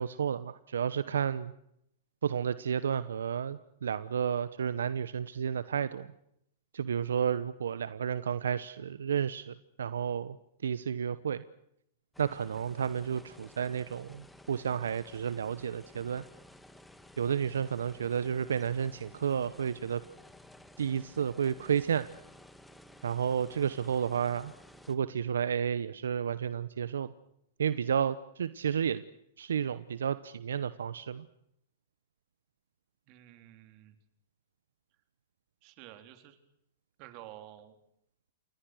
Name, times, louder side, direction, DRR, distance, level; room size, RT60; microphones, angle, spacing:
voice 1, 0.0-1.5 2.2-6.1 6.7-10.4 10.6-11.4 12.2-16.2 17.2-20.0 20.8-22.1 23.0-24.5 24.9-27.1 27.6-29.0 29.4-31.3, right 8 dB, 85° right, 15 dB, 0.9 m, -31 dB
sound 1, 12.1-25.0, left 1 dB, 5° left, 2.2 m, -54 dB
voice 2, 33.1-34.0 35.6-36.4 37.0-37.8, right 13 dB, 45° right, 8 dB, 3.8 m, -51 dB
28.5 x 23.0 x 6.4 m, 0.75 s
hypercardioid pair, 125°, 0 cm